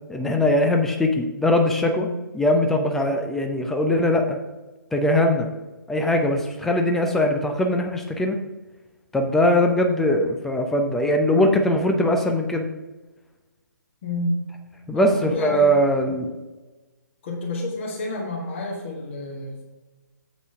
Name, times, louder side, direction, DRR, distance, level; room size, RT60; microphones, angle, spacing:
voice 1, 0.1-2.1 2.3-4.4 4.9-5.5 5.9-8.4 9.1-12.7 14.9-16.3, left 1 dB, 5° left, 4 dB, 0.4 m, -21 dB
voice 2, 14.0-14.4 14.9-15.8 17.2-19.6, left 2 dB, 35° left, -1 dB, 1.5 m, -29 dB
7.9 x 6.0 x 4.6 m, 1.2 s
figure-of-eight pair, 135°, 11 cm